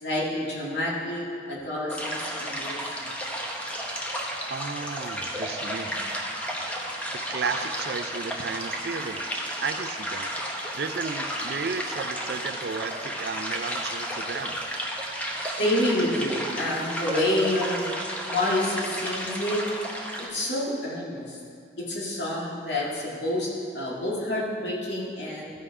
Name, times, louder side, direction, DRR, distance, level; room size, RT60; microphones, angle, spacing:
voice 1, 0.0-3.1 15.6-17.9 18.3-19.6 20.2-21.4 21.8-23.5 23.7-25.5, left 1 dB, 80° left, -5 dB, 2.2 m, -28 dB
sound 1, 1.9-20.3, equal, 10° left, 0.9 m, -33 dB
voice 2, 4.5-6.0 7.3-9.2 9.6-10.3 10.7-14.7, right 5 dB, 65° right, 10 dB, 0.5 m, -33 dB
14.0 x 5.6 x 4.8 m, 2.3 s
head